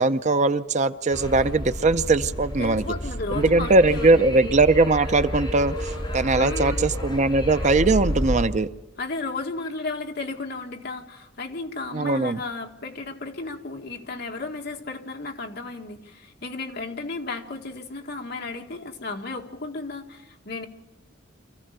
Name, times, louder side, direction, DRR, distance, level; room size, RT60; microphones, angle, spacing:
voice 1, 0.0-2.8 3.3-8.7 11.9-12.4, right 3 dB, 35° right, 12 dB, 0.6 m, -20 dB
sound 1, 1.1-8.4, equal, 20° left, 5.8 m, -30 dB
voice 2, 2.6-4.2 6.4-6.9 9.0-20.7, left 3 dB, 55° left, 3 dB, 2.0 m, -34 dB
25.5 x 15.5 x 6.8 m, 1.1 s
head